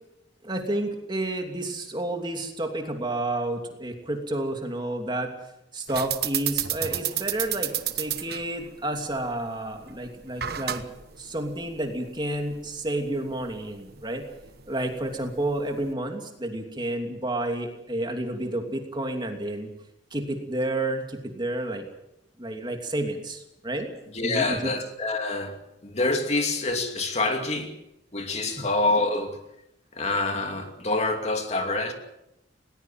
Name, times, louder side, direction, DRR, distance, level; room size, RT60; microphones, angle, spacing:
voice 1, 0.4-5.3 5.7-10.8 11.2-14.2 14.7-19.7 20.1-21.8 22.4-23.9 24.2-24.6 28.6-28.7, right 1 dB, 25° right, 2.9 m, -30 dB
sound 1, 5.9-15.9, right 11 dB, 60° right, 1.2 m, -33 dB
voice 2, 24.1-27.7 28.1-29.4 29.9-31.9, left 2 dB, 35° left, 2.7 m, -26 dB
20.5 x 19.5 x 7.6 m
head